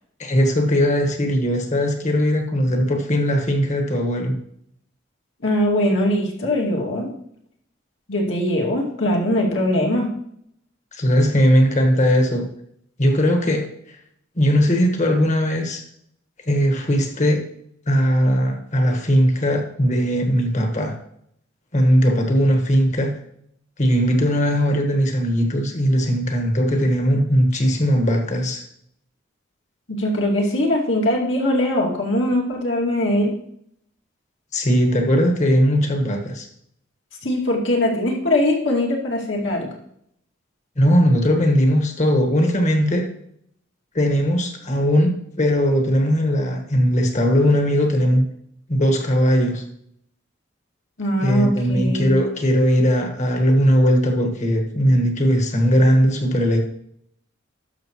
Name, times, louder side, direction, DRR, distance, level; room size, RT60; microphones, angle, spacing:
voice 1, 0.2-4.4 10.9-12.5 13.0-13.7 14.4-15.8 16.5-17.4 17.9-21.0 21.7-23.1 23.8-28.6 34.5-36.5 40.8-43.1 43.9-48.2 48.7-49.6 51.2-56.6, equal, 40° left, 4 dB, 1.5 m, -19 dB
voice 2, 5.4-7.1 8.1-10.1 29.9-33.3 37.2-39.7 51.0-52.2, left 1 dB, 70° left, -1 dB, 2.4 m, -21 dB
11.5 x 6.6 x 3.1 m, 0.70 s
head